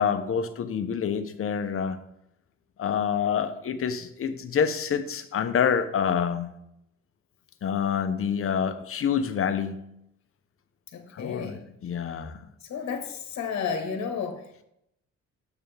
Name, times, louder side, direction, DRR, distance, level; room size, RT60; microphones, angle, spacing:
voice 1, 0.0-2.0 2.8-6.5 7.6-9.8 11.1-11.5 11.8-12.4, left 7 dB, 45° left, 9 dB, 0.8 m, -27 dB
voice 2, 10.9-11.6 12.6-14.7, left 6 dB, 65° left, 4 dB, 1.4 m, -32 dB
7.9 x 6.8 x 3.4 m, 0.77 s
cardioid pair, 90°, 30 cm